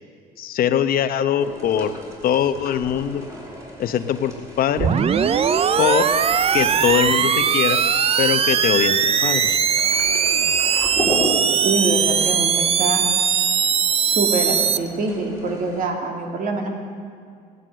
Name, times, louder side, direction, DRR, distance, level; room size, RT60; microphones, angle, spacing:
voice 1, 0.4-1.9 2.2-3.2 3.8-4.3 4.6-4.9 5.8-6.0 6.5-7.8 8.2-9.6, left 9 dB, 60° left, 10 dB, 0.9 m, -21 dB
sound 1, 1.4-15.8, equal, 20° right, 3.8 m, -35 dB
sound 2, 4.8-14.8, right 7 dB, 35° right, 0.6 m, -20 dB
voice 2, 11.6-13.1 13.9-16.7, right 3 dB, 55° right, 2 dB, 2.7 m, -24 dB
16.5 x 10.0 x 7.7 m, 2.2 s
cardioid pair, 110°, 17 cm